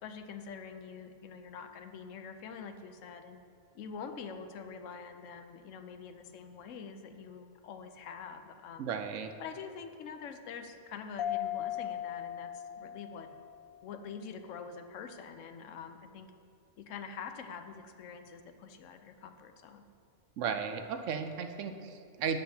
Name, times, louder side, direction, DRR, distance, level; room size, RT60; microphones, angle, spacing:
voice 1, 0.0-3.4 3.7-8.9 9.4-13.3 13.8-16.3 16.8-19.8, left 6 dB, 85° left, 7 dB, 1.0 m, -45 dB
voice 2, 8.8-9.3 20.4-22.4, right 6 dB, 80° right, 7 dB, 1.0 m, -35 dB
Mallet percussion, 11.2-13.7, left 11 dB, 60° left, 0.7 m, -37 dB
10.5 x 7.7 x 2.8 m, 2.3 s
omnidirectional pair, 1.3 m